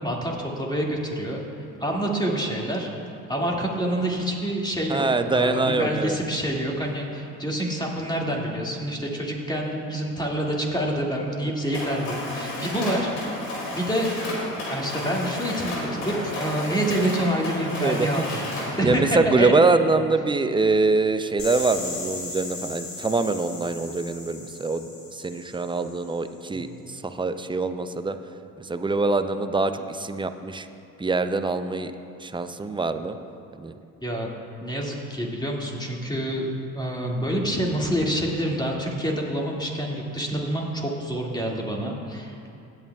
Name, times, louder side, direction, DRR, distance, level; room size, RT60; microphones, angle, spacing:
voice 1, 0.0-1.4 1.8-2.9 3.3-13.3 13.7-14.1 14.7-18.5 18.8-19.5 26.5-26.6 34.0-34.3 34.6-42.5, right 1 dB, 10° left, -2 dB, 2.1 m, -27 dB
voice 2, 4.9-6.2 17.8-18.3 18.8-24.9 25.1-26.7 27.2-28.1 28.7-30.7 31.0-31.9 32.2-33.1 33.6-33.7, right 3 dB, 10° right, 9 dB, 0.5 m, -24 dB
Mechanisms, 11.7-18.8, left 1 dB, 80° left, 2.4 m, -32 dB
sound 1, 21.4-26.2, left 3 dB, 50° left, 2.6 m, -37 dB
17.0 x 8.9 x 2.3 m, 2.6 s
hypercardioid pair, 55°, 43 cm